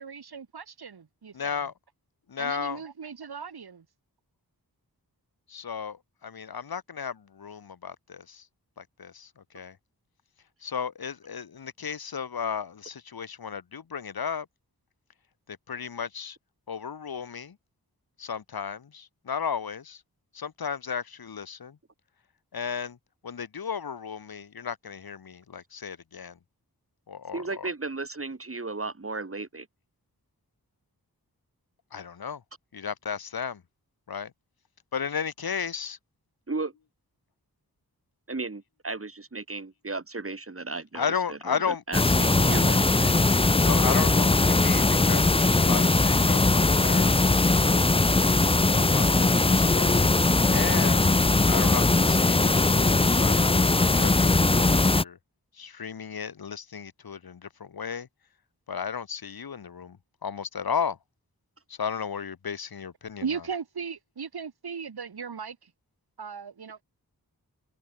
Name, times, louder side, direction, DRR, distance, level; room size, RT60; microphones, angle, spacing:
voice 1, 0.0-1.6 2.4-3.9 63.2-65.7 66.2-66.8, right 6 dB, 80° right, 2.1 m, -37 dB
voice 2, 1.3-1.7 2.3-2.8 5.5-8.5 8.8-9.8 10.6-14.5 15.7-16.4 16.7-17.6 18.2-20.0 20.3-21.8 22.5-23.0 23.2-26.4 27.1-27.7 31.9-32.4 32.7-33.6 34.1-34.3 34.9-36.0 40.9-41.8 43.5-47.9 48.7-50.0 50.5-51.1 51.5-55.2 55.5-58.1 58.7-61.0 61.7-63.5, left 6 dB, 70° left, 1.3 m, -34 dB
voice 3, 27.3-29.7 36.5-36.7 38.3-43.2, right 3 dB, 35° right, 2.5 m, -35 dB
sound 1, 41.9-55.0, left 2 dB, 15° left, 0.6 m, -21 dB
wide cardioid pair, 50°, 37 cm